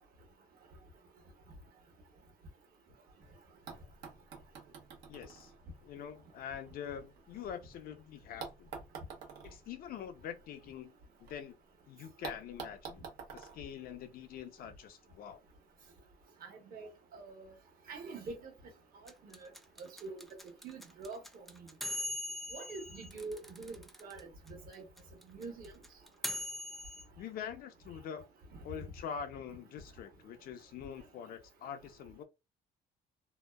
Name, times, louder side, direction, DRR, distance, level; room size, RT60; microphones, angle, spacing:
sound 1, 3.2-3.3 3.7-7.7 8.4-11.4 11.6-11.7 12.2-14.6 15.6-15.7, right 5 dB, 85° right, 0.9 m, -49 dB
voice 1, 5.1-5.5 5.8-8.7 9.4-10.9 11.2-11.6 11.9-13.0 13.3-15.4 27.2-28.3 28.6-32.2, left 8 dB, 60° left, 0.5 m, -45 dB
voice 2, 16.4-17.5 17.9-18.5 19.2-19.5 19.8-20.2 20.6-21.2 21.5-21.7 22.5-24.8 25.3-25.7, right 3 dB, 60° right, 1.1 m, -45 dB
sound 2, 19.1-24.2 24.5-24.6 24.7-27.0, left 1 dB, ahead, 0.3 m, -40 dB
2.7 x 2.2 x 2.2 m
cardioid pair, 110°, 17 cm